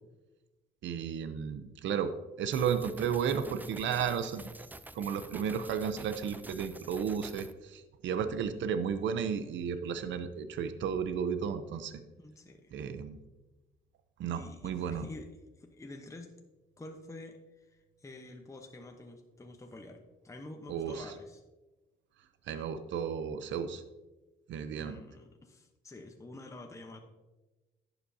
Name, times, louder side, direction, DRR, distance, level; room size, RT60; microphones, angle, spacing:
voice 1, 0.8-2.1 2.4-4.4 4.9-11.9 12.7-13.2 14.2-15.1 20.7-21.1 22.5-23.8 24.5-25.0, right 7 dB, 70° right, 10 dB, 0.7 m, -33 dB
sound 1, 2.5-7.5, right 2 dB, 10° right, 0.4 m, -48 dB
voice 2, 12.2-12.7 14.3-15.3 15.6-16.3 16.8-21.4 24.8-27.0, left 2 dB, 15° left, 3 dB, 0.9 m, -48 dB
11.0 x 8.1 x 2.7 m, 1.1 s
cardioid pair, 90°, 20 cm